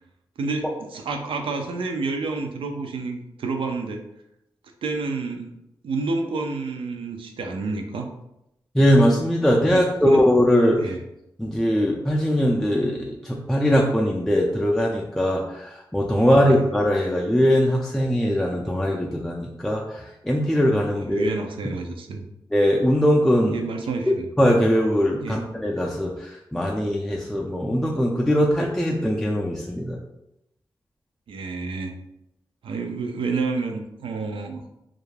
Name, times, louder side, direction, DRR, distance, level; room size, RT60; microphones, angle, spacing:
voice 1, 0.4-4.0 4.8-5.5 5.8-8.1 9.7-10.2 10.8-11.0 16.2-16.6 21.1-22.3 23.5-24.3 25.2-25.4 31.3-31.9 32.6-34.7, right 3 dB, 85° right, 4 dB, 0.4 m, -29 dB
voice 2, 8.7-10.8 11.4-21.3 22.5-23.6 24.4-30.0, equal, 5° left, -3 dB, 0.3 m, -21 dB
2.4 x 2.1 x 3.2 m, 0.85 s
cardioid pair, 55°, 9 cm